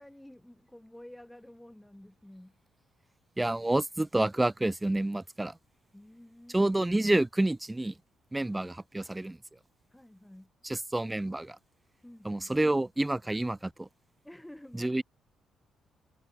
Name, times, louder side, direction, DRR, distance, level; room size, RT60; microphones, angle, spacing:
voice 1, 0.0-2.6 5.9-6.7 8.4-8.7 9.9-10.5 12.0-12.5 14.2-15.0, left 1 dB, 5° left, 3.4 m, -51 dB
voice 2, 3.4-5.5 6.5-7.9 8.3-9.4 10.6-11.6 12.2-13.9 14.8-15.0, right 1 dB, 10° right, 0.3 m, -28 dB
cardioid pair, 90°, 0 cm